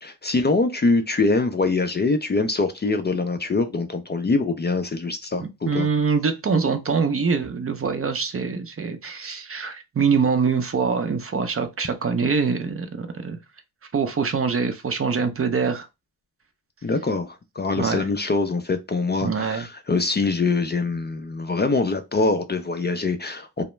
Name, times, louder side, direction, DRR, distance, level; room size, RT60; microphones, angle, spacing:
voice 1, 0.0-5.9 16.8-23.6, left 3 dB, 30° left, 0.4 m, -24 dB
voice 2, 5.4-13.4 13.9-15.9 17.8-18.1 19.2-19.7, right 5 dB, 35° right, 0.5 m, -24 dB
2.2 x 2.1 x 3.0 m
cardioid pair, 45°, 38 cm